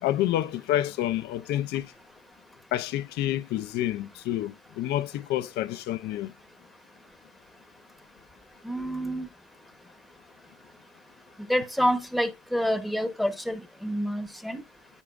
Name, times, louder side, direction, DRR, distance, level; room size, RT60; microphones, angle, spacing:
voice 1, 0.0-1.9 2.7-6.3, left 13 dB, 80° left, 0.5 m, -28 dB
voice 2, 8.6-9.3 11.5-14.6, equal, ahead, 1.0 m, -28 dB
13.5 x 4.6 x 2.4 m
cardioid pair, 110°, 17 cm